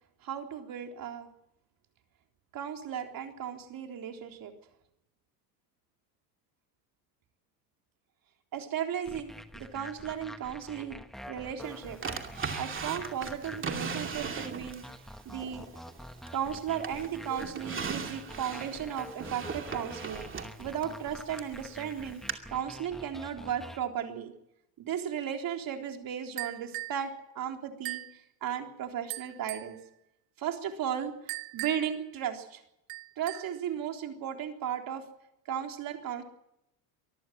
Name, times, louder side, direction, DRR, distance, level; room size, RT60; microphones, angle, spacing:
voice 1, 0.2-1.3 2.5-4.5 8.5-11.0 11.3-12.0 12.6-14.9 15.3-15.7 16.3-20.3 20.6-22.2 22.5-24.3 24.8-28.0 28.4-29.8 30.4-32.6 33.2-35.1 35.5-36.2, right 9 dB, 45° right, 4 dB, 3.8 m, -35 dB
sound 1, 9.1-23.8, equal, ahead, 1.5 m, -47 dB
Drawer open or close, 12.0-14.9 15.4-16.5 16.8-21.6 22.3-22.4, right 5 dB, 25° right, 2.6 m, -38 dB
sound 2, 26.4-27.0 27.8-28.2 29.1-29.7 31.3-32.0 32.9-33.6, right 22 dB, 60° right, 1.3 m, -39 dB
24.5 x 14.5 x 7.5 m, 0.81 s
supercardioid pair, 110°, 49 cm